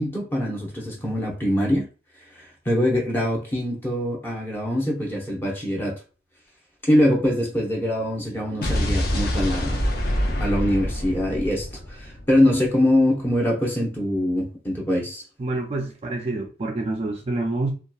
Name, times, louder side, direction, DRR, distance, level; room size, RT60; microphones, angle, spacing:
voice 1, 0.0-1.8 2.3-6.0 6.9-9.8 10.4-15.2, left 1 dB, 10° left, 0.7 m, -23 dB
Explosion, 8.6-12.7, left 1 dB, 55° left, 0.6 m, -26 dB
voice 2, 15.4-17.7, right 2 dB, 35° right, 0.3 m, -27 dB
2.8 x 2.3 x 2.3 m
head